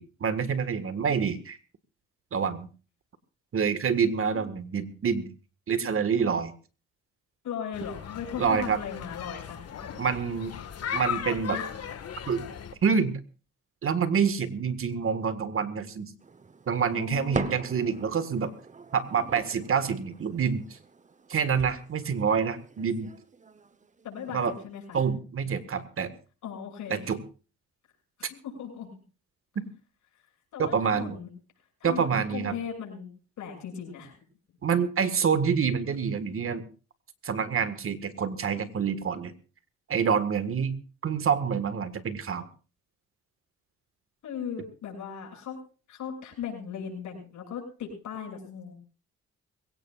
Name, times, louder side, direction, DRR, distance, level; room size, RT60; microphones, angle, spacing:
voice 1, 0.0-1.6 2.3-2.7 3.5-5.3 5.7-6.5 8.4-8.8 10.0-10.5 10.9-11.6 12.3-12.4 12.8-13.2 13.8-16.1 16.7-18.5 18.9-20.8 21.3-23.1 24.3-24.5 24.9-26.1 26.9-27.2 29.5-29.7 30.6-31.2 31.8-32.6 34.6-36.6 37.2-39.3 39.9-40.8 41.0-42.5, right 6 dB, 45° right, 12 dB, 1.6 m, -27 dB
voice 2, 7.4-10.1 11.5-11.6 16.9-17.8 24.0-25.0 25.4-25.6 26.4-27.1 28.3-28.9 30.5-31.3 31.8-33.1 33.4-34.2 44.2-45.6 45.9-48.7, left 7 dB, 75° left, 0 dB, 6.7 m, -38 dB
sound 1, 7.7-12.7, left 8 dB, 55° left, 1.7 m, -37 dB
sound 2, 16.2-25.1, right 4 dB, 25° right, 1.0 m, -42 dB
22.0 x 17.0 x 2.4 m, 0.35 s
cardioid pair, 90°, 30 cm